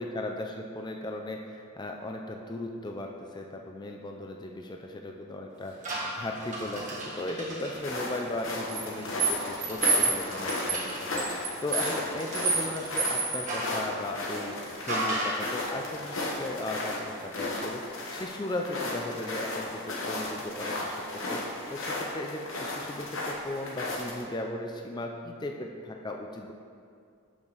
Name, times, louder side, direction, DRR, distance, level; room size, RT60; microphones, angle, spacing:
voice 1, 0.0-21.4 21.7-26.5, left 1 dB, 20° left, 2 dB, 0.3 m, -37 dB
sound 1, 5.8-7.7 8.7-13.8 14.9-15.5, right 3 dB, 35° right, 1.3 m, -30 dB
sound 2, 7.7-24.2, left 2 dB, 55° left, 1.1 m, -35 dB
6.6 x 6.0 x 4.0 m, 2.3 s
head